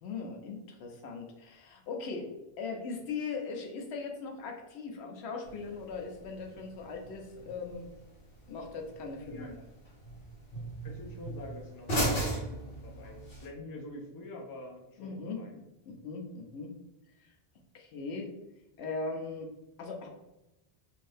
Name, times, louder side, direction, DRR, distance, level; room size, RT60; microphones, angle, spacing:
voice 1, 0.0-7.9 8.5-9.6 15.0-16.7 17.2-17.3 17.7-18.3 18.8-19.5 19.8-20.1, left 4 dB, 85° left, 2 dB, 0.9 m, -39 dB
sound 1, 5.4-13.4, right 1 dB, 60° left, 1.2 m, -38 dB
voice 2, 9.2-9.5 10.8-15.5, left 1 dB, 35° left, 1 dB, 0.3 m, -46 dB
2.7 x 2.6 x 3.3 m, 0.93 s
omnidirectional pair, 1.1 m